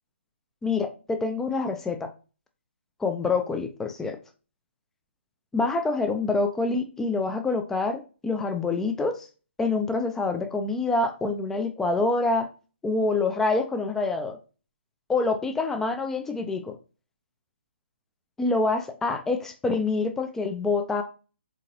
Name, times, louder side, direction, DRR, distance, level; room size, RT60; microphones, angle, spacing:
voice 1, 0.6-2.1 3.0-4.2 5.5-9.3 9.6-12.5 12.8-14.4 15.1-16.8 18.4-21.0, left 3 dB, 5° left, 7 dB, 0.4 m, -26 dB
3.8 x 3.7 x 2.8 m, 0.34 s
figure-of-eight pair, 140°, 7 cm